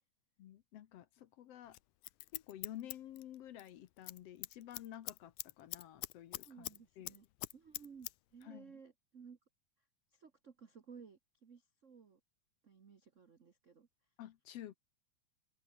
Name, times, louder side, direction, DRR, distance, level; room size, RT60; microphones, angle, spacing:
voice 1, 0.4-1.8 2.3-6.7 7.0-7.2 8.4-8.8 14.2-14.7, left 12 dB, 65° left, 1.8 m, -51 dB
Scissors, 1.7-3.7 4.0-4.2 4.4-6.8 7.0-8.1 8.4-8.5, left 19 dB, 85° left, 2.1 m, -44 dB
voice 2, 6.4-7.2 7.5-9.4 10.1-12.2 12.6-13.9, right 6 dB, 70° right, 0.7 m, -57 dB
open air
omnidirectional pair, 3.4 m